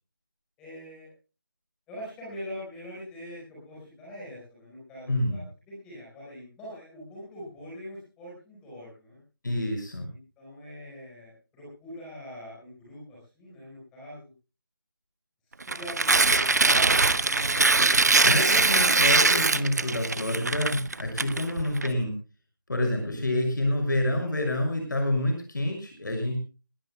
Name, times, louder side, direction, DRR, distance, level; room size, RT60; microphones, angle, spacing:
voice 1, 0.6-1.1 1.9-9.2 10.1-14.3 15.7-18.7, equal, 5° left, -6 dB, 4.8 m, -43 dB
voice 2, 5.1-5.4 9.4-10.1 18.2-22.1 22.7-26.4, left 1 dB, 60° left, 3 dB, 6.7 m, -28 dB
Tearing, 15.6-21.9, right 3 dB, 50° right, 0.8 m, -22 dB
21.0 x 19.5 x 2.3 m, 0.34 s
figure-of-eight pair, 175°, 12 cm